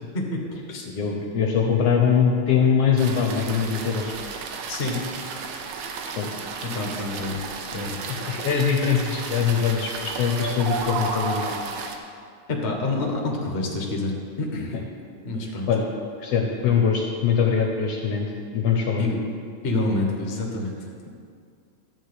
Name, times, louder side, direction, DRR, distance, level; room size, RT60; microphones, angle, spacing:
voice 1, 0.1-0.9 4.7-5.0 6.6-7.4 7.7-8.0 12.5-14.1 14.4-14.7 15.2-15.7 19.0-19.2 19.6-20.8, left 2 dB, 35° left, 0 dB, 1.0 m, -27 dB
voice 2, 0.9-4.2 6.2-6.3 8.1-11.5 14.7-14.8 15.7-15.9 16.2-19.1, left 6 dB, 70° left, 1 dB, 1.6 m, -22 dB
sound 1, 3.0-12.0, right 5 dB, 80° right, 2.1 m, -35 dB
sound 2, 10.2-12.0, right 3 dB, 60° right, 1.6 m, -30 dB
12.0 x 4.5 x 8.2 m, 2.2 s
omnidirectional pair, 3.3 m